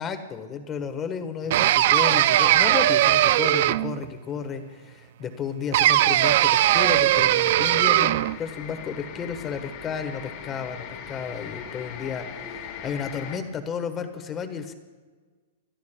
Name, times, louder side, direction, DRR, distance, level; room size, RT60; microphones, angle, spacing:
voice 1, 0.0-14.7, left 6 dB, 20° left, 8 dB, 1.2 m, -33 dB
sound 1, 1.5-4.1 5.7-8.4, right 14 dB, 55° right, 0.3 m, -19 dB
sound 2, 6.6-13.4, left 7 dB, 40° left, 1.7 m, -40 dB
30.0 x 13.0 x 2.2 m, 1.4 s
hypercardioid pair, 160°, 0 cm